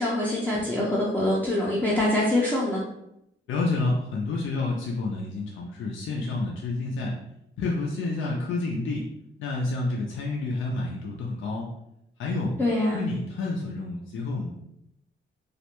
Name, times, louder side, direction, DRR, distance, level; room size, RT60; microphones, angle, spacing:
voice 1, 0.0-2.8 12.6-13.0, left 1 dB, 10° left, -7 dB, 0.5 m, -24 dB
voice 2, 3.5-7.1 7.6-9.1 9.4-11.7 12.2-12.5 12.9-14.5, left 3 dB, 80° left, -2 dB, 0.4 m, -29 dB
2.4 x 2.1 x 2.9 m, 0.82 s
cardioid pair, 115°, 20 cm